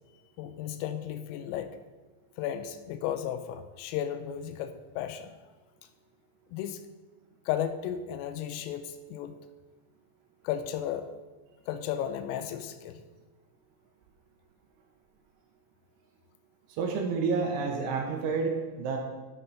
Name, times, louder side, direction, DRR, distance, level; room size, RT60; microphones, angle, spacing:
voice 1, 0.4-1.8 2.4-5.4 6.5-6.8 7.5-9.4 10.4-11.1 11.7-13.0, left 10 dB, 85° left, 9 dB, 3.1 m, -34 dB
voice 2, 16.7-19.0, right 4 dB, 80° right, 2 dB, 2.9 m, -29 dB
12.0 x 4.4 x 5.4 m, 1.3 s
omnidirectional pair, 6.0 m